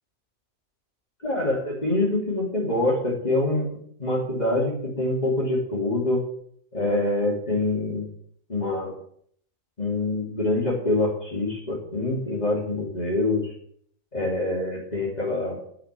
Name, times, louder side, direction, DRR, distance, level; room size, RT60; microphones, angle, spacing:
voice 1, 1.2-6.2 6.7-8.1 8.5-8.9 9.8-13.5 14.1-15.6, left 2 dB, 30° left, -5 dB, 3.2 m, -25 dB
10.0 x 8.5 x 7.6 m, 0.64 s
omnidirectional pair, 1.4 m